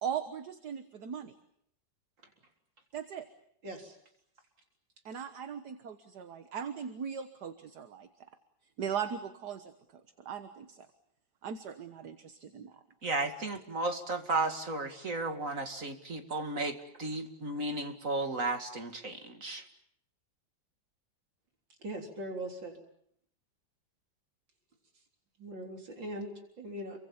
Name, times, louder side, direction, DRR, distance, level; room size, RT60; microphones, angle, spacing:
voice 1, 0.0-1.4 2.9-3.3 5.1-8.1 8.8-10.9 11.4-12.7, right 8 dB, 65° right, 9 dB, 1.8 m, -39 dB
voice 2, 3.6-4.0 21.8-22.8 25.4-27.0, right 1 dB, 90° right, 2 dB, 4.5 m, -41 dB
voice 3, 13.0-19.6, right 2 dB, 45° right, 6 dB, 2.5 m, -34 dB
29.5 x 24.0 x 7.2 m, 0.71 s
omnidirectional pair, 2.0 m